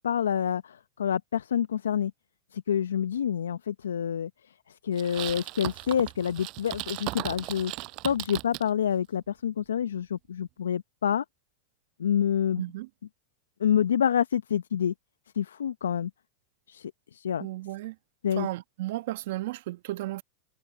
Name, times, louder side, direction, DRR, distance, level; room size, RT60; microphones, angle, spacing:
voice 1, 0.0-2.1 2.5-4.3 4.8-7.7 8.0-11.2 12.0-12.6 13.6-14.9 15.4-16.1 16.7-17.5 18.2-18.5, left 9 dB, 80° left, 0.7 m, -27 dB
sound 1, 5.0-8.7, right 23 dB, 45° right, 6.6 m, -37 dB
voice 2, 12.6-12.9 17.4-17.9 18.3-20.2, right 17 dB, 65° right, 1.5 m, -34 dB
hypercardioid pair, 105°, 0 cm